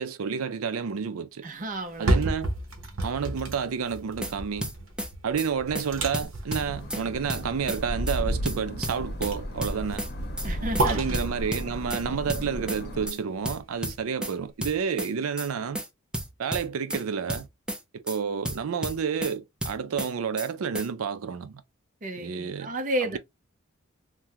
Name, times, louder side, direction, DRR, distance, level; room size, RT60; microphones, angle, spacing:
voice 1, 0.0-1.4 2.0-2.5 3.0-4.7 5.2-10.1 10.9-15.8 16.4-17.5 17.9-21.6 22.2-22.7 23.1-23.2, right 6 dB, 85° right, 0.5 m, -30 dB
voice 2, 1.4-2.2 10.4-11.1 22.0-23.2, right 1 dB, 40° right, 0.7 m, -32 dB
sound 1, 1.8-13.8 14.2-14.3, right 2 dB, 70° right, 0.9 m, -32 dB
sound 2, 3.9-4.3 4.6-5.1 5.4-5.5 5.7-5.9 6.1-7.0 7.3-7.8 8.1-8.2 8.4-9.3 9.6-10.1 10.4-10.5 10.7-10.9 11.1-12.0 12.3-12.8 13.1-13.2 13.4-14.3 14.6-15.1 15.4-15.5 15.7-15.9 16.1-17.0 17.3-17.8 18.1-18.2 18.4-19.3 19.6-20.1 20.4-20.5 20.7-20.9, right 1 dB, 5° right, 0.6 m, -32 dB
sound 3, 6.5-13.1, equal, 50° left, 0.8 m, -34 dB
3.5 x 2.1 x 2.8 m
head